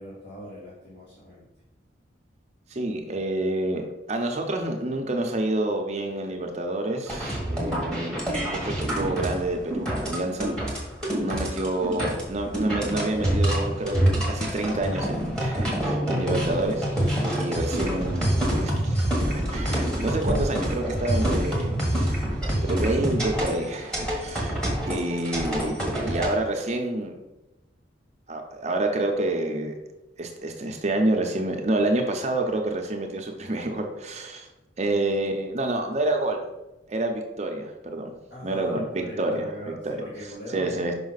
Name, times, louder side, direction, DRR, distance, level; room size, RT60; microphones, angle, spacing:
voice 1, 0.0-1.4 17.6-18.9 38.3-40.9, equal, 60° left, -8 dB, 1.7 m, -39 dB
voice 2, 2.7-10.5 11.2-18.3 18.6-18.7 19.5-22.1 22.5-24.6 24.9-27.2 28.3-29.7 30.2-34.5 34.8-36.4 36.9-38.1 38.4-40.0 40.5-40.9, right 2 dB, 35° right, 3 dB, 0.6 m, -28 dB
sound 1, 7.1-26.3, right 1 dB, 5° left, 1.4 m, -26 dB
5.6 x 5.2 x 4.0 m, 1.0 s
head